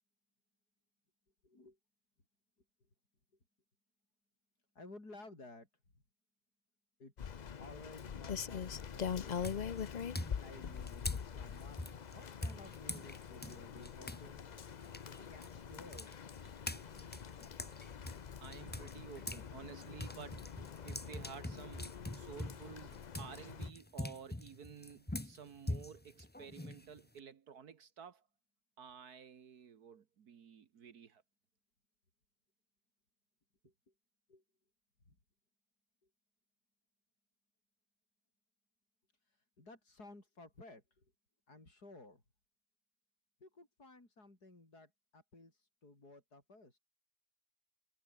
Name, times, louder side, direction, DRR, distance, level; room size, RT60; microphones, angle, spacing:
voice 1, 1.4-1.8 4.7-5.7 7.0-9.8 10.4-14.5 15.0-16.1 23.4-23.5 33.6-33.7 34.3-34.4 35.0-35.1 39.3-41.1 41.5-42.2 43.4-46.8, left 2 dB, 75° left, 6.8 m, -56 dB
Rain, 7.2-23.7, left 7 dB, 55° left, 0.4 m, -44 dB
sound 1, 8.5-8.9 9.4-14.3 14.6-19.5 19.8-27.2, left 1 dB, 5° left, 1.0 m, -44 dB
voice 2, 18.4-28.2 28.8-31.2, right 7 dB, 70° right, 1.8 m, -53 dB
omnidirectional pair, 1.7 m